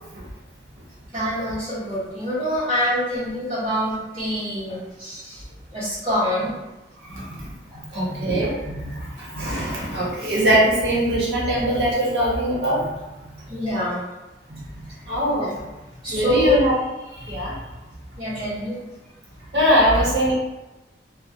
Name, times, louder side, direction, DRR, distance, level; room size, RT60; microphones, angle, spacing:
voice 1, 1.1-5.4 5.7-6.5 13.5-14.0 16.0-16.6 18.2-18.8, left 1 dB, 35° right, -12 dB, 0.7 m, -25 dB
voice 2, 7.0-7.5 7.9-12.9 14.5-14.6 15.1-15.6 16.1-16.8 17.1-17.5 19.5-20.3, equal, 75° right, -5 dB, 0.8 m, -22 dB
2.3 x 2.1 x 2.7 m, 1.1 s
head